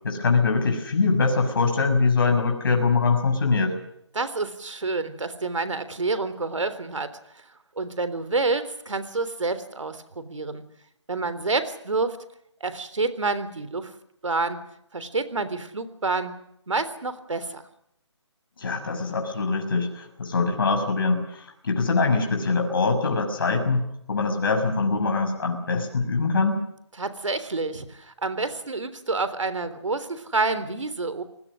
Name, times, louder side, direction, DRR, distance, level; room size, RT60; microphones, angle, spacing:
voice 1, 0.0-3.8 18.6-26.6, left 4 dB, 45° left, 4 dB, 6.4 m, -23 dB
voice 2, 4.1-7.1 7.8-10.6 11.1-12.2 12.6-13.9 14.2-14.6 14.9-16.3 16.7-17.6 27.0-31.2, right 3 dB, 85° right, 13 dB, 3.5 m, -28 dB
29.5 x 20.0 x 6.5 m, 0.77 s
hypercardioid pair, 170°, 16 cm